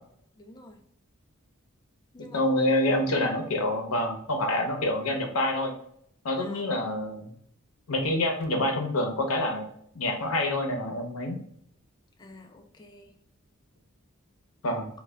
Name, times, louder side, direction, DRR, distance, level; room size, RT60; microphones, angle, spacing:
voice 1, 0.4-0.8 2.1-2.6 6.4-6.7 12.2-13.2, left 1 dB, 20° left, 3 dB, 0.3 m, -49 dB
voice 2, 2.3-5.7 6.2-7.3 7.9-9.7 9.9-11.4 14.6-14.9, left 1 dB, 85° left, 3 dB, 0.7 m, -27 dB
2.2 x 2.1 x 3.3 m, 0.68 s
head